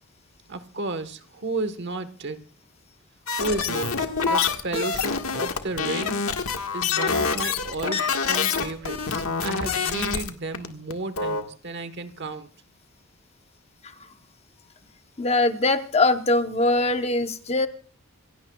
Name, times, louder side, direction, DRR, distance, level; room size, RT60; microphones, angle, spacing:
voice 1, 0.5-2.4 3.4-3.9 4.2-6.2 6.7-12.5, right 2 dB, 50° right, 11 dB, 1.3 m, -32 dB
sound 1, 3.3-10.3 10.5-10.7 10.9-11.4, left 5 dB, 75° left, 1.6 m, -26 dB
voice 2, 15.2-17.7, left 2 dB, 30° left, 8 dB, 0.9 m, -22 dB
27.0 x 16.5 x 2.3 m, 0.38 s
head